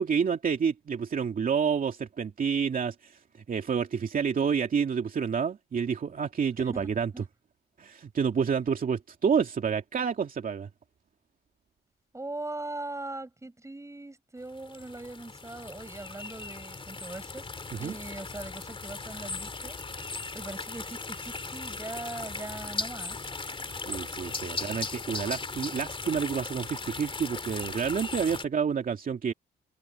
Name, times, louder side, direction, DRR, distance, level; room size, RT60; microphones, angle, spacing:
voice 1, 0.0-3.2 3.5-7.1 7.8-10.7 17.7-17.9 23.5-29.3, right 6 dB, 45° right, 2.5 m, -29 dB
voice 2, 6.6-7.2 12.1-17.5 17.8-20.1 20.3-23.3, right 2 dB, 15° right, 7.5 m, -41 dB
sound 1, 14.5-28.4, left 3 dB, 25° left, 3.1 m, -38 dB
cardioid pair, 90°, 20 cm